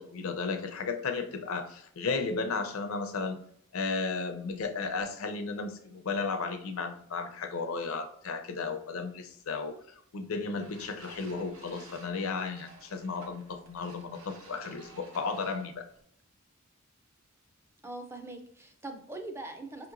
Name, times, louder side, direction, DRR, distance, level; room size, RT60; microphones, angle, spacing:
voice 1, 0.0-3.4 3.7-15.9, left 4 dB, 75° left, 7 dB, 0.5 m, -34 dB
sound 1, 10.5-16.0, right 2 dB, 85° right, 0.8 m, -53 dB
voice 2, 17.8-19.9, right 2 dB, 10° right, 5 dB, 0.4 m, -42 dB
5.1 x 2.9 x 2.5 m, 0.69 s
head